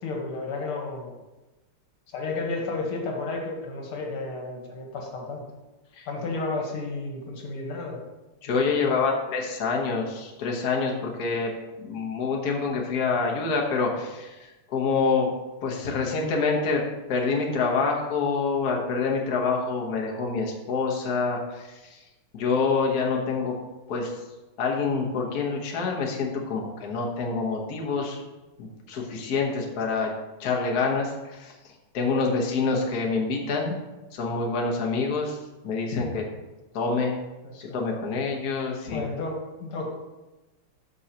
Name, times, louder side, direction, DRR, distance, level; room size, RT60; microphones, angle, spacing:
voice 1, 0.0-1.1 2.1-5.4 6.1-8.0 8.8-9.1 37.5-37.8 38.9-39.9, left 3 dB, 80° left, 0 dB, 2.2 m, -32 dB
voice 2, 8.4-11.5 11.8-15.3 15.6-16.8 17.1-22.0 22.3-23.5 23.9-24.1 24.6-28.2 28.6-30.1 30.4-31.5 31.9-33.8 34.1-36.3 36.7-37.1 37.7-39.0, left 4 dB, 50° left, -1 dB, 1.5 m, -26 dB
13.0 x 5.4 x 2.9 m, 1.1 s
omnidirectional pair, 2.4 m